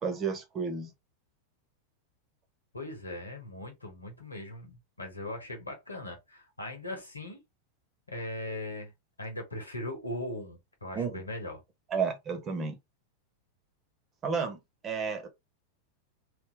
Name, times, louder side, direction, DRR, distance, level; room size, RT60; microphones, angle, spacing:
voice 1, 0.0-0.9 10.9-11.2 11.9-12.8 14.2-15.3, right 5 dB, 25° right, 1.2 m, -32 dB
voice 2, 2.7-7.4 8.1-8.9 9.2-11.6, left 1 dB, 80° left, 1.3 m, -39 dB
3.3 x 2.7 x 3.5 m
figure-of-eight pair, 90°, 0 cm